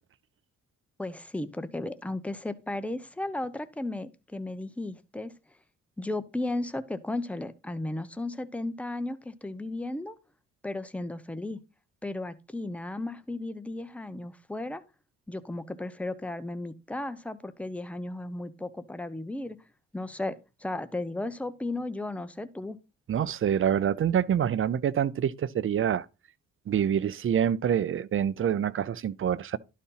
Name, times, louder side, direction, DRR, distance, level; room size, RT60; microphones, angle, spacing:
voice 1, 1.0-5.3 6.0-10.2 10.6-11.6 12.0-14.8 15.3-19.6 19.9-22.8, left 2 dB, 5° left, 0.9 m, -35 dB
voice 2, 23.1-26.1 26.7-29.6, right 9 dB, 45° right, 0.6 m, -26 dB
11.5 x 4.2 x 5.6 m
cardioid pair, 90°, 30 cm